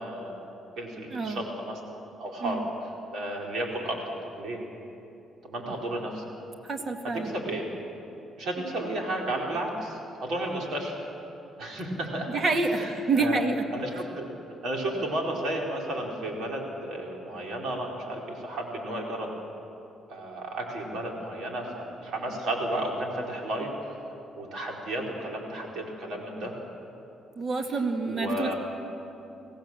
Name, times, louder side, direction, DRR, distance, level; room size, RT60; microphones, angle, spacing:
voice 1, 0.0-2.6 3.1-4.6 5.4-6.2 7.2-7.7 8.4-10.9 11.6-12.4 12.7-13.4 13.7-14.3 14.6-19.3 20.1-23.7 24.3-26.5 28.0-28.5, right 1 dB, 75° right, -1 dB, 4.6 m, -33 dB
voice 2, 1.1-1.4 2.4-2.6 6.6-7.3 12.3-13.7 27.4-28.5, right 3 dB, 45° right, 4 dB, 2.2 m, -27 dB
24.0 x 17.5 x 7.7 m, 2.9 s
cardioid pair, 90°, 0 cm